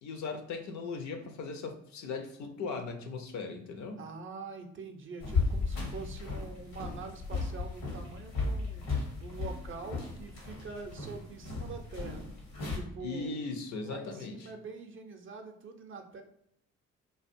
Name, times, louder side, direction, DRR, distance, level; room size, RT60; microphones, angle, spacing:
voice 1, 0.0-4.0 13.0-14.5, left 4 dB, 55° left, 5 dB, 0.5 m, -38 dB
voice 2, 4.0-12.2 12.7-13.4 13.8-16.2, right 4 dB, 35° right, 5 dB, 0.5 m, -45 dB
sound 1, 5.2-12.8, left 3 dB, 75° left, 1.0 m, -35 dB
2.3 x 2.2 x 2.5 m, 0.74 s
hypercardioid pair, 45°, 35 cm